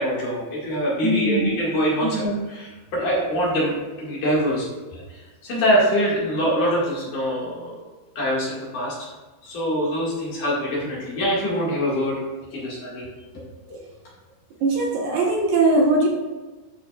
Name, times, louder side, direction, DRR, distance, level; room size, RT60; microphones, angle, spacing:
voice 1, 0.0-4.6 4.9-7.8 8.2-9.1 9.4-12.2 12.5-13.1 13.7-13.8, equal, 55° left, -6 dB, 3.4 m, -24 dB
voice 2, 1.0-1.6 2.0-2.3 14.6-16.1, right 2 dB, 70° right, -2 dB, 2.7 m, -20 dB
12.0 x 6.3 x 2.5 m, 1.3 s
omnidirectional pair, 4.6 m